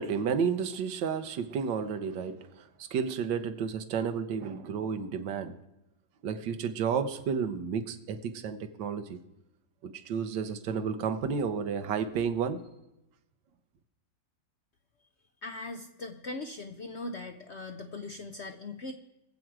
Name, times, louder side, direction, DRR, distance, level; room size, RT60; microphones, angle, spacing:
voice 1, 0.0-5.5 6.2-9.2 9.8-12.6, right 6 dB, 75° right, 1.5 m, -32 dB
voice 2, 15.4-18.9, left 2 dB, 60° left, 0.7 m, -40 dB
21.5 x 7.5 x 4.7 m
omnidirectional pair, 2.0 m